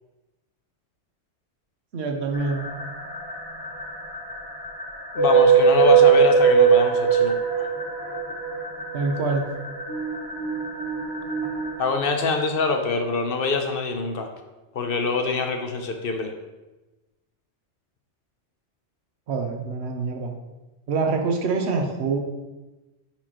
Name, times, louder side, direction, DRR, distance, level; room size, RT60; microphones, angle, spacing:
voice 1, 1.9-2.7 8.9-9.5 19.3-20.3 20.9-22.2, right 4 dB, 70° right, 3 dB, 1.1 m, -25 dB
sound 1, 2.3-11.8, right 6 dB, 20° left, 0.9 m, -21 dB
voice 2, 5.1-7.3 11.8-14.3 14.7-16.3, left 4 dB, 60° left, 5 dB, 0.8 m, -24 dB
9.5 x 4.4 x 2.9 m, 1.1 s
omnidirectional pair, 1.2 m